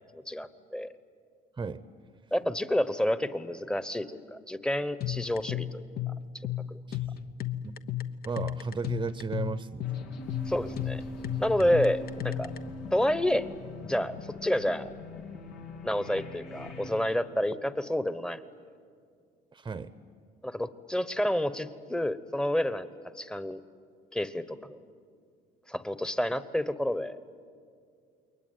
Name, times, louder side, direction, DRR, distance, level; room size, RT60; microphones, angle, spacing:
voice 1, 0.3-0.9 2.3-5.8 6.7-6.8 10.5-11.0 11.4-12.5 12.9-13.5 13.8-14.1 14.4-14.9 15.8-18.4 20.4-22.9 23.1-23.6 24.1-24.8 25.7-27.2, equal, 5° left, 13 dB, 1.1 m, -29 dB
sound 1, 5.0-12.6, left 12 dB, 65° left, 1.1 m, -34 dB
voice 2, 8.3-9.9 11.6-11.8 19.5-19.9, right 5 dB, 25° right, 13 dB, 0.8 m, -35 dB
sound 2, 9.8-16.9, left 2 dB, 90° left, 3.3 m, -41 dB
28.5 x 22.5 x 9.4 m, 2.2 s
cardioid pair, 110°, 17 cm